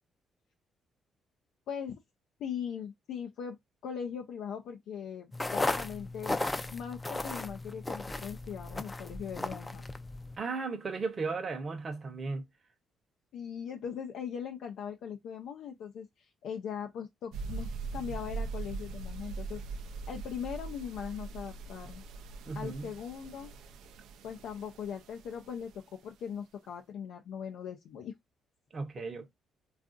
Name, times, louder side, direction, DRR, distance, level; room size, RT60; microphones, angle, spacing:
voice 1, 2.4-3.6 3.8-6.4 6.7-9.8 13.3-22.0 22.5-23.5 24.2-28.1, left 8 dB, 80° left, 0.4 m, -40 dB
sound 1, 5.3-10.4, left 2 dB, 15° left, 0.4 m, -35 dB
voice 2, 10.4-12.5 22.5-22.9 28.7-29.3, right 4 dB, 40° right, 0.7 m, -35 dB
sound 2, 17.3-25.7, right 4 dB, 85° right, 0.3 m, -41 dB
3.5 x 2.4 x 2.4 m
cardioid pair, 90°, 0 cm